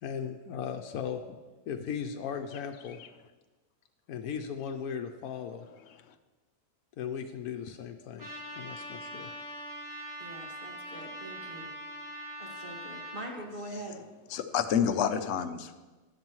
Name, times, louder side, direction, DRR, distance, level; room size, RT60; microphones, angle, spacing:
voice 1, 0.0-1.2 1.7-3.0 4.1-5.6 7.0-9.3, left 7 dB, 85° left, 4 dB, 1.1 m, -37 dB
Trumpet, 8.2-13.3, equal, 10° right, 2.8 m, -42 dB
voice 2, 10.2-11.7 12.4-14.0, right 1 dB, 35° right, 0 dB, 2.0 m, -43 dB
voice 3, 14.3-15.8, left 8 dB, 55° left, 7 dB, 0.9 m, -29 dB
13.0 x 11.0 x 3.1 m, 1.2 s
omnidirectional pair, 1.5 m